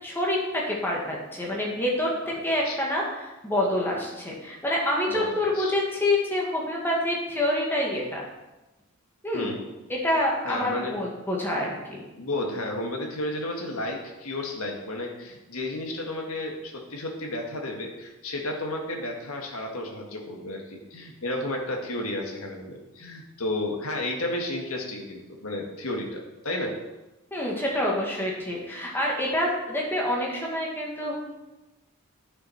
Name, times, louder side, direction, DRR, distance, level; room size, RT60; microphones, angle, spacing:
voice 1, 0.0-2.1 2.4-8.3 9.2-9.5 9.9-12.0 27.3-31.2, left 1 dB, 10° left, -3 dB, 2.0 m, -27 dB
voice 2, 5.1-5.7 9.3-9.6 10.4-11.0 12.2-26.7, left 1 dB, 70° left, 1 dB, 1.7 m, -32 dB
10.5 x 6.3 x 4.5 m, 1.0 s
head